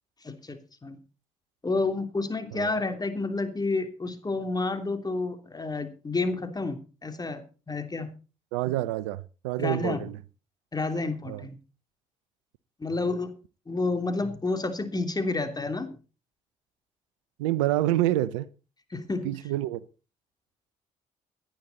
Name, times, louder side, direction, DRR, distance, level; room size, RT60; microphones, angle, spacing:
voice 1, 0.2-1.0 1.6-8.1 9.6-10.1 10.7-11.6 12.8-13.3 13.7-15.9 18.9-19.3, left 3 dB, 25° left, 3.1 m, -30 dB
voice 2, 8.5-10.1 11.3-11.5 17.4-18.5 19.2-19.8, right 14 dB, 85° right, 0.7 m, -27 dB
17.5 x 10.5 x 4.1 m
hypercardioid pair, 55°, 16 cm